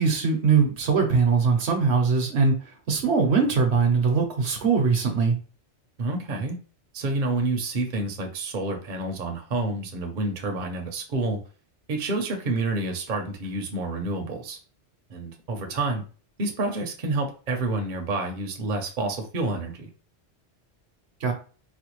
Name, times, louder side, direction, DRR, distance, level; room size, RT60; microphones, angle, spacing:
voice 1, 0.0-2.5 2.9-5.3 21.2-21.3, right 5 dB, 70° right, 4 dB, 1.0 m, -21 dB
voice 2, 6.0-6.6 6.9-11.4 11.9-14.6 15.1-16.0 16.4-19.9, right 2 dB, 50° right, 2 dB, 0.8 m, -28 dB
4.2 x 2.3 x 3.0 m, 0.38 s
omnidirectional pair, 1.2 m